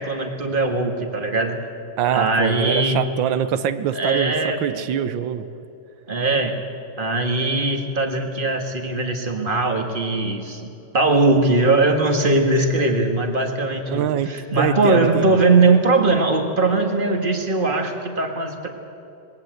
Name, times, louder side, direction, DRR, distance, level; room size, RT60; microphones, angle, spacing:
voice 1, 0.0-1.6 2.1-3.0 3.9-4.8 6.1-6.5 7.0-18.7, right 3 dB, 30° right, 4 dB, 1.8 m, -20 dB
voice 2, 2.0-5.4 13.9-14.3 14.6-15.4, right 9 dB, 80° right, 13 dB, 1.6 m, -24 dB
20.5 x 17.0 x 7.9 m, 2.8 s
omnidirectional pair, 2.1 m